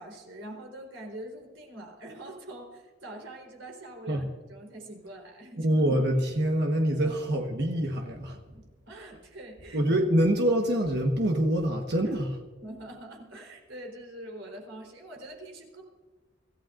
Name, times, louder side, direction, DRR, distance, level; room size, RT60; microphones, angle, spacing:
voice 1, 0.0-5.7 7.0-7.2 8.5-9.8 12.0-12.1 12.6-15.8, right 1 dB, 75° right, 1 dB, 4.0 m, -44 dB
voice 2, 5.6-8.4 9.7-12.4, right 1 dB, 55° right, 2 dB, 1.4 m, -25 dB
25.0 x 14.5 x 2.6 m, 1.4 s
head